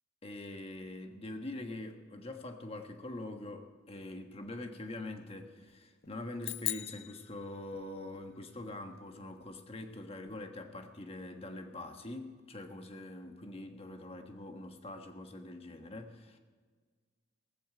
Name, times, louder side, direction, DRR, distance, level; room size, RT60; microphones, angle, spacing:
voice 1, 0.2-16.4, left 2 dB, 30° left, 5 dB, 1.3 m, -44 dB
sound 1, 4.4-4.5 4.8-7.5 7.7-10.4, left 2 dB, 50° left, 1.3 m, -65 dB
sound 2, 6.4-8.1, left 17 dB, 70° left, 0.4 m, -39 dB
17.5 x 15.0 x 5.0 m, 1.5 s
head